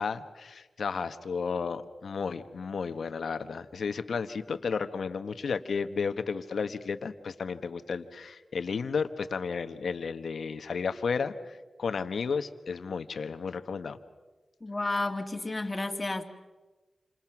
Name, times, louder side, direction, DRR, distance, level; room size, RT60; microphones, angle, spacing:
voice 1, 0.0-14.0, left 5 dB, 85° left, 10 dB, 1.2 m, -33 dB
voice 2, 14.6-16.2, left 2 dB, 30° left, 4 dB, 2.4 m, -31 dB
28.5 x 27.0 x 6.0 m, 1.2 s
cardioid pair, 70°, 0 cm